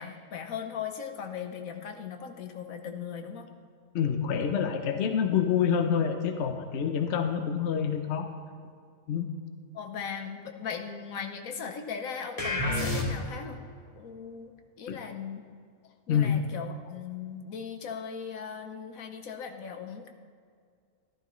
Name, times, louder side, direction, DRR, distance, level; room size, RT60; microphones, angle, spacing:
voice 1, 0.0-3.5 7.2-7.3 9.7-13.6 13.9-15.4 16.1-20.1, left 7 dB, 75° left, 5 dB, 1.3 m, -38 dB
voice 2, 3.9-8.3 9.1-9.3 14.9-15.0 16.1-16.3, left 8 dB, 60° left, 6 dB, 1.0 m, -27 dB
sound 1, 12.4-13.5, left 2 dB, 25° left, 1.2 m, -29 dB
14.0 x 11.5 x 3.1 m, 2.2 s
omnidirectional pair, 1.5 m